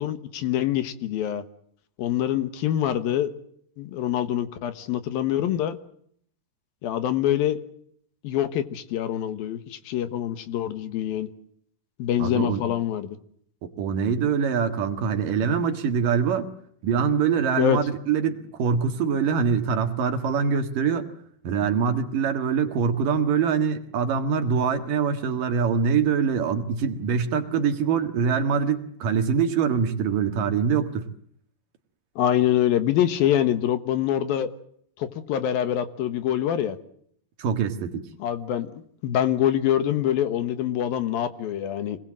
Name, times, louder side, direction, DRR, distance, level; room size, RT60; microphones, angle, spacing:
voice 1, 0.0-1.4 2.0-3.3 3.8-5.8 6.8-7.6 8.2-11.3 12.0-13.2 17.6-17.8 32.2-34.5 35.0-36.8 38.2-42.0, left 11 dB, 75° left, 11 dB, 3.1 m, -25 dB
voice 2, 12.2-12.6 13.6-16.5 16.8-21.1 21.4-31.0 37.4-38.0, right 6 dB, 65° right, 7 dB, 3.2 m, -24 dB
25.5 x 20.0 x 7.6 m, 0.66 s
omnidirectional pair, 4.4 m